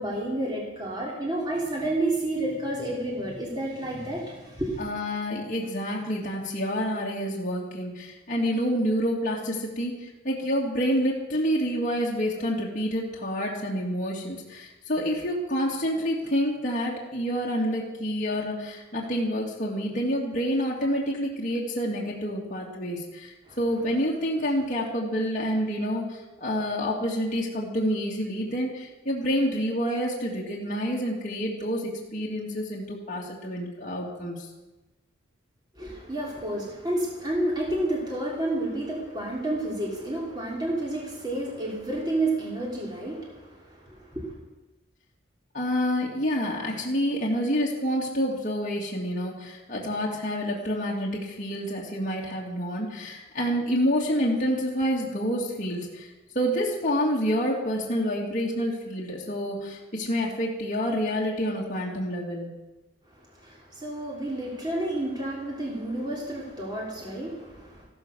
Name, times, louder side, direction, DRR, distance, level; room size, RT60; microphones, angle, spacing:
voice 1, 0.0-4.8 23.5-23.6 35.7-44.3 63.1-67.9, right 1 dB, 20° right, -3 dB, 3.1 m, -30 dB
voice 2, 4.8-34.5 45.5-62.5, equal, 40° left, -3 dB, 2.7 m, -28 dB
15.0 x 13.5 x 6.5 m, 1.1 s
head